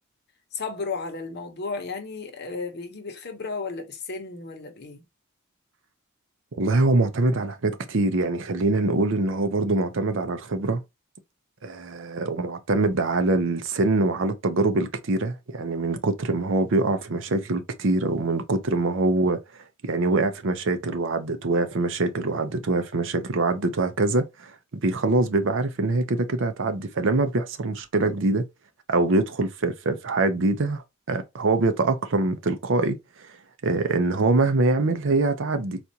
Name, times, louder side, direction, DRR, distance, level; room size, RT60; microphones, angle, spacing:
voice 1, 0.5-5.0, left 4 dB, 50° left, 0.8 m, -33 dB
voice 2, 6.6-10.8 11.6-19.4 19.8-24.5 24.8-28.4 28.9-33.3 33.6-35.8, right 2 dB, 60° right, 0.6 m, -24 dB
4.3 x 2.3 x 2.7 m
head